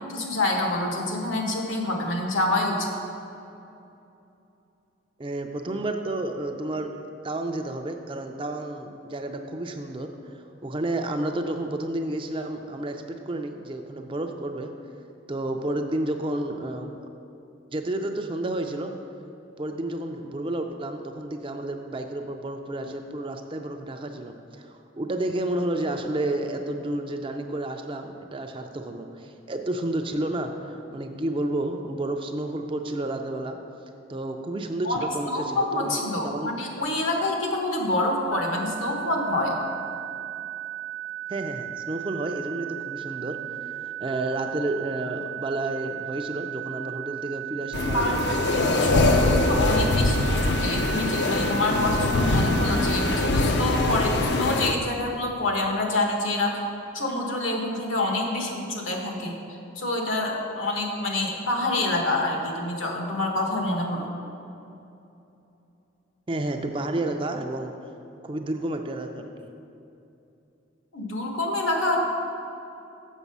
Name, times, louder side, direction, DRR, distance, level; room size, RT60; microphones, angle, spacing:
voice 1, 0.1-2.9 34.8-39.5 47.9-56.6 56.9-59.4 59.7-64.1 70.9-72.1, left 2 dB, 85° left, 1 dB, 1.3 m, -27 dB
voice 2, 5.2-7.0 7.2-14.7 15.3-17.1 17.7-18.9 19.6-33.6 34.1-36.0 36.2-36.5 41.3-48.9 66.3-67.7 68.2-69.5, right 1 dB, 25° right, 5 dB, 0.4 m, -31 dB
sound 1, 38.3-53.3, right 13 dB, 75° right, 0.6 m, -36 dB
sound 2, 47.7-54.7, left 2 dB, 55° left, 0.5 m, -23 dB
7.2 x 6.5 x 5.4 m, 2.8 s
head